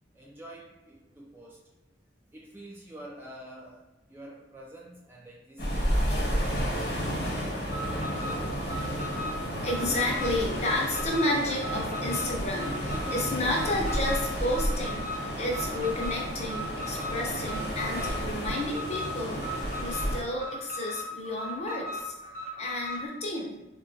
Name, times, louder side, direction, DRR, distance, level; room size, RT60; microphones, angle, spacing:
voice 1, 0.1-1.6 2.3-8.7, right 1 dB, 10° right, -3 dB, 0.3 m, -48 dB
sound 1, 5.6-20.2, equal, 55° left, 1.0 m, -32 dB
Alarm, 7.6-23.1, left 1 dB, 45° right, 0.8 m, -38 dB
voice 2, 9.6-15.1 15.4-22.1 22.6-23.6, left 1 dB, 35° left, -2 dB, 0.6 m, -31 dB
3.8 x 2.2 x 2.6 m, 1.1 s
head